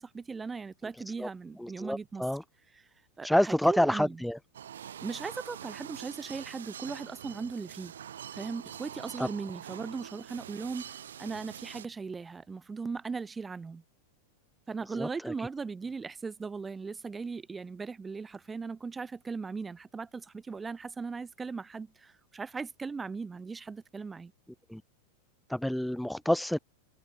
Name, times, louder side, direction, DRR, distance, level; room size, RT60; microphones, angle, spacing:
voice 1, 0.0-2.2 3.2-4.2 5.0-7.9 8.3-13.8 14.7-24.3, right 4 dB, 15° right, 2.4 m, -38 dB
voice 2, 0.9-1.3 1.6-2.4 3.2-4.4 9.2-9.3 14.9-15.5 24.7-24.8 25.5-26.6, left 1 dB, ahead, 0.3 m, -28 dB
sound 1, 4.5-11.9, right 9 dB, 65° right, 2.1 m, -45 dB
figure-of-eight pair, 90°, 0 cm